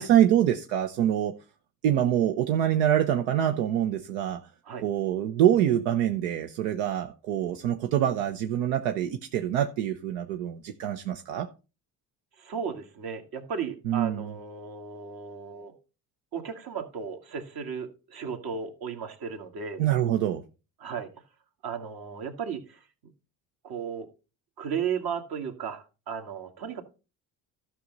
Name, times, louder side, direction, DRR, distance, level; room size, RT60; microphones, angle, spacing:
voice 1, 0.0-1.3 1.8-4.4 4.8-11.5 13.9-14.3 19.8-20.4, right 11 dB, 85° right, 0.9 m, -25 dB
voice 2, 12.4-15.7 16.3-19.8 20.8-21.1 21.6-22.8 23.6-24.1 24.6-26.8, right 7 dB, 55° right, 2.2 m, -35 dB
12.5 x 6.3 x 4.0 m
supercardioid pair, 75°, 42 cm